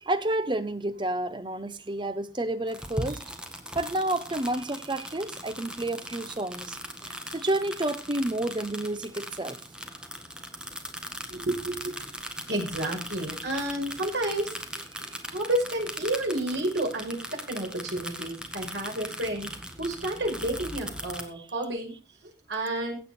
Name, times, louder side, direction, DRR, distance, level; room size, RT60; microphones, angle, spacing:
voice 1, 0.0-3.2 3.7-9.6 15.0-15.2, right 1 dB, 25° right, 0.9 m, -30 dB
sound 1, 2.7-21.2, equal, 5° right, 1.7 m, -39 dB
voice 2, 11.3-12.0 12.5-14.6 15.3-19.5 19.8-21.9 22.2-23.0, right 1 dB, 85° right, 5.4 m, -30 dB
15.5 x 8.5 x 4.4 m
head